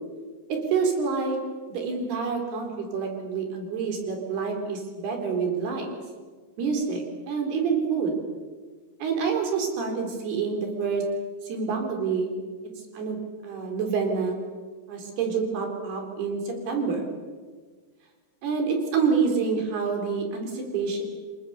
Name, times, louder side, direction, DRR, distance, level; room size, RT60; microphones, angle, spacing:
voice 1, 0.5-1.4 1.7-5.9 6.6-8.1 9.0-11.0 11.4-12.3 12.9-13.2 13.4-14.4 14.9-17.1 18.4-21.0, right 5 dB, 85° right, 3 dB, 5.9 m, -27 dB
28.5 x 23.5 x 7.0 m, 1.5 s
omnidirectional pair, 4.5 m